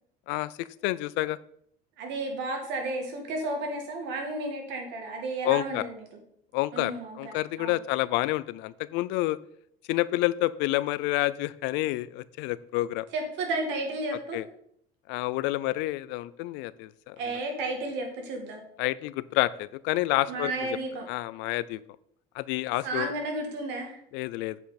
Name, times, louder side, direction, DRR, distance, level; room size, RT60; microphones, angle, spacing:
voice 1, 0.3-1.4 5.5-5.8 6.5-6.9 7.2-9.4 9.9-13.1 14.3-14.4 15.1-17.2 18.8-20.5 21.1-21.8 22.3-23.1 24.1-24.6, left 17 dB, 85° left, 18 dB, 0.4 m, -28 dB
voice 2, 2.0-6.0 6.7-7.8 13.1-14.4 17.2-18.6 20.3-21.1 22.8-24.0, right 2 dB, 80° right, 3 dB, 2.1 m, -33 dB
8.1 x 5.3 x 4.2 m, 0.69 s
cardioid pair, 130°, 18 cm